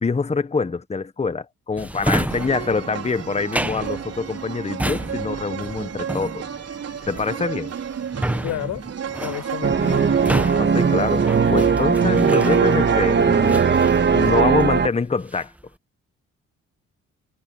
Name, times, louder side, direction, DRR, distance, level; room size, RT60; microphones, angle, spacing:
voice 1, 0.0-6.4 7.1-7.7 10.5-13.7 14.1-15.5, left 4 dB, 20° left, 1.2 m, -25 dB
Drawer open or close, 1.8-13.0 13.5-14.8 15.1-15.6, right 1 dB, 5° right, 1.4 m, -30 dB
sound 1, 2.3-14.4, right 8 dB, 55° right, 4.8 m, -33 dB
voice 2, 8.4-8.9 9.2-10.2, left 13 dB, 85° left, 6.0 m, -30 dB
sound 2, 9.6-14.9, right 6 dB, 35° right, 1.8 m, -18 dB
cardioid pair, 90°, 30 cm